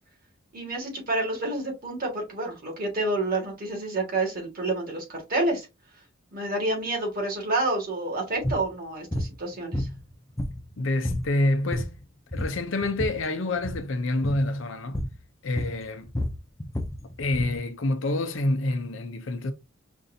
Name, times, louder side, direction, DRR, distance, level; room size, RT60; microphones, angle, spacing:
voice 1, 0.5-5.7 6.3-9.9, right 2 dB, 45° right, 1.7 m, -29 dB
sound 1, 8.4-8.7 9.1-9.3 9.7-10.7 11.0-11.3 11.6-12.0 12.3-13.2 13.6-13.9 14.2-14.5 14.9-15.2 15.6-17.6, left 1 dB, 15° left, 0.5 m, -30 dB
voice 2, 10.8-12.0 12.3-15.0 15.4-16.1 17.2-19.5, left 2 dB, 65° left, 0.6 m, -27 dB
5.3 x 2.5 x 2.6 m
head